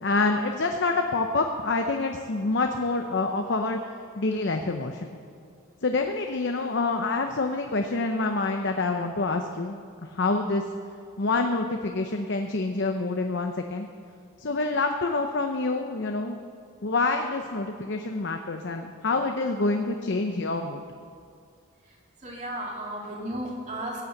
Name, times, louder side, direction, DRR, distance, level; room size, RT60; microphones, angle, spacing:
voice 1, 0.0-3.8 4.2-5.1 5.8-10.6 11.2-13.9 14.4-16.4 16.8-20.8, left 3 dB, 55° left, 4 dB, 0.7 m, -27 dB
voice 2, 21.8-24.1, right 1 dB, 35° right, -2 dB, 2.5 m, -35 dB
16.0 x 8.5 x 7.9 m, 2.2 s
head